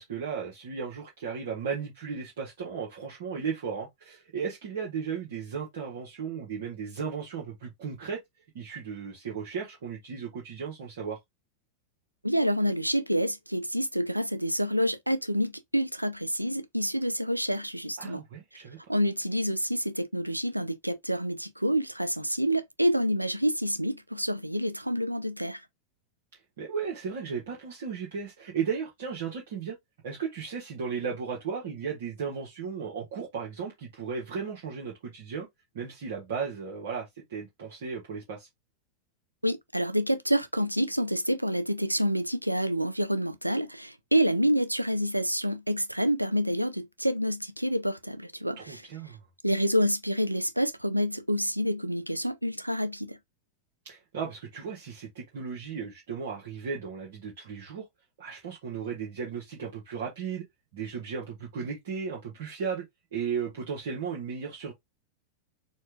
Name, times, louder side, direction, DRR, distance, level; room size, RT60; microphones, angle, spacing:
voice 1, 0.0-8.2 8.5-11.2 18.0-18.8 26.6-29.8 30.0-35.5 35.7-38.5 48.6-49.2 53.8-57.8 58.2-60.4 60.7-62.8 63.1-64.7, right 6 dB, 55° right, 1.1 m, -35 dB
voice 2, 12.2-18.2 18.9-25.6 39.4-48.9 49.4-53.2, equal, 90° right, 0.4 m, -28 dB
4.3 x 2.4 x 3.3 m
figure-of-eight pair, 90°, 0 cm